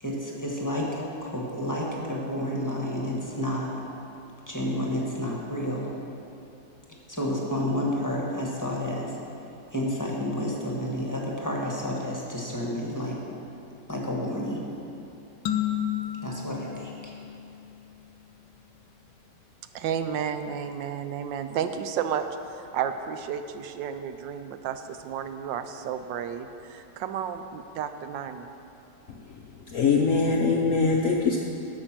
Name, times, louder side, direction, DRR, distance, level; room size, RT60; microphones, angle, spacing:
voice 1, 0.0-3.7 4.5-5.9 7.1-9.1 9.7-13.2 13.9-14.7 16.2-17.1, equal, 10° left, -3 dB, 1.1 m, -30 dB
sound 1, 15.5-18.1, left 10 dB, 80° left, 1.3 m, -32 dB
voice 2, 19.7-22.3 22.6-28.5, right 8 dB, 85° right, 9 dB, 1.3 m, -32 dB
voice 3, 29.7-31.4, left 4 dB, 65° left, 1 dB, 0.8 m, -22 dB
10.5 x 6.7 x 5.9 m, 2.7 s
omnidirectional pair, 2.0 m